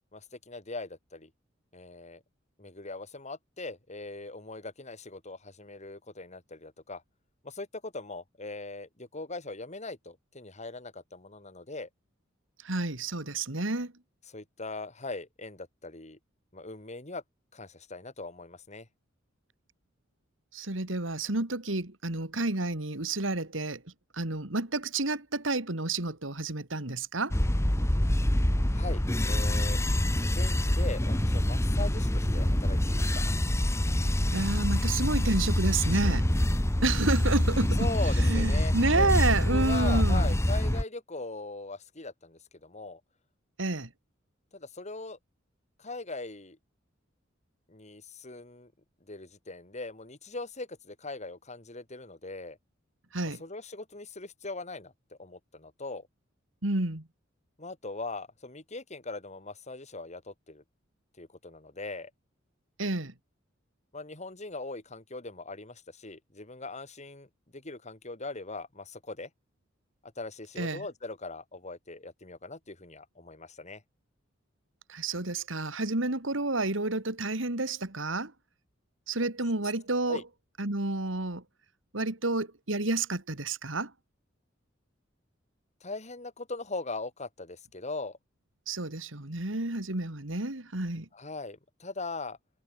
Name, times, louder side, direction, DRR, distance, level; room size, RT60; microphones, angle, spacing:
voice 1, 0.1-1.3 1.7-2.2 2.6-7.0 7.4-11.9 14.3-16.2 16.5-17.2 17.5-18.9 28.7-29.8 30.3-33.2 37.8-39.1 39.5-43.0 44.5-45.2 45.8-46.6 47.7-48.7 49.1-52.6 53.2-54.9 55.2-56.1 57.6-60.6 61.2-62.1 63.9-69.3 70.0-73.8 80.1-80.2 85.8-88.2 91.1-92.4, left 3 dB, 35° left, 3.4 m, -40 dB
voice 2, 12.6-13.9 20.5-23.8 24.1-27.4 34.3-36.3 36.8-37.8 38.2-40.3 43.6-43.9 53.1-53.4 56.6-57.0 62.8-63.1 70.6-70.8 74.9-78.3 79.1-80.2 80.6-81.4 81.9-83.9 88.7-91.1, right 2 dB, 80° right, 2.7 m, -30 dB
sound 1, 27.3-40.8, left 1 dB, 15° left, 1.1 m, -26 dB
head